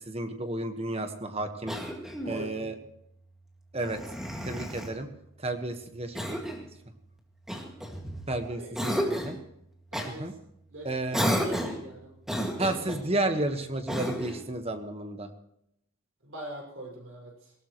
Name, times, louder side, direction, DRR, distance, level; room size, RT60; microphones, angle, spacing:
voice 1, 0.1-1.7 2.3-2.7 3.7-4.0 4.4-5.1 5.4-6.4 8.3-9.4 10.1-10.3 10.8-11.3 12.6-15.3, right 2 dB, 30° right, 7 dB, 1.3 m, -32 dB
Cough, 1.7-2.4 3.8-4.9 6.1-6.7 7.5-8.3 8.7-9.4 9.9-10.1 11.1-11.8 12.2-13.0 13.9-14.4, equal, ahead, 2.0 m, -32 dB
voice 2, 2.2-2.7 8.6-9.1 9.9-10.3 10.7-10.9 11.3-12.1 16.2-17.3, equal, 80° right, 1 dB, 5.6 m, -42 dB
19.0 x 17.5 x 3.1 m, 0.77 s
head